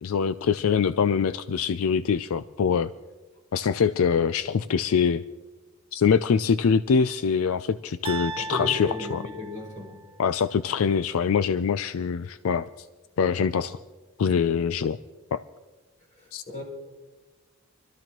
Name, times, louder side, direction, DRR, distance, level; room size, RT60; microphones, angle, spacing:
voice 1, 0.0-2.9 3.5-5.2 5.9-9.2 10.2-12.7 13.2-13.8 14.2-15.0 15.3-15.4 16.3-16.4, left 6 dB, 75° left, 13 dB, 0.4 m, -24 dB
sound 1, 8.0-10.2, right 3 dB, 25° right, 0.6 m, -37 dB
voice 2, 8.4-10.0 16.2-16.6, left 1 dB, 35° left, -3 dB, 4.6 m, -35 dB
25.0 x 13.5 x 3.0 m, 1.3 s
head